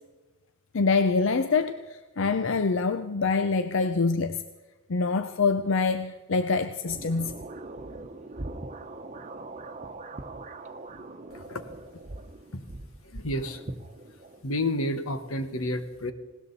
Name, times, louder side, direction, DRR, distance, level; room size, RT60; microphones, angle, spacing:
voice 1, 0.7-4.4 4.9-7.3, left 4 dB, 60° left, 9 dB, 0.6 m, -25 dB
sound 1, 6.8-14.4, right 2 dB, 35° right, 1.0 m, -41 dB
voice 2, 13.0-13.6 14.4-16.1, left 1 dB, 85° left, 9 dB, 1.4 m, -30 dB
19.5 x 17.5 x 4.2 m, 1.2 s
head